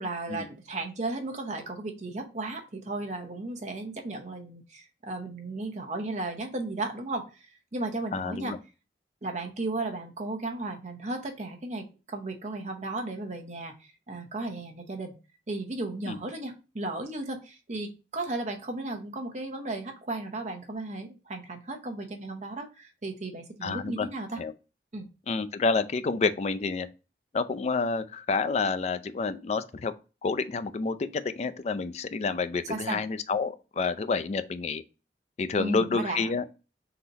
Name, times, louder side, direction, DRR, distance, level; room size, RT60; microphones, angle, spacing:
voice 1, 0.0-7.3 7.7-8.5 9.2-15.1 15.5-24.4 24.9-25.1 32.7-33.0 35.6-36.3, right 2 dB, 40° right, 0.8 m, -35 dB
voice 2, 8.1-8.6 16.1-16.2 23.6-24.1 24.4-24.5 25.3-26.9 27.3-29.9 30.2-34.8 35.4-36.4, left 4 dB, 40° left, 0.3 m, -29 dB
3.9 x 2.9 x 4.0 m
head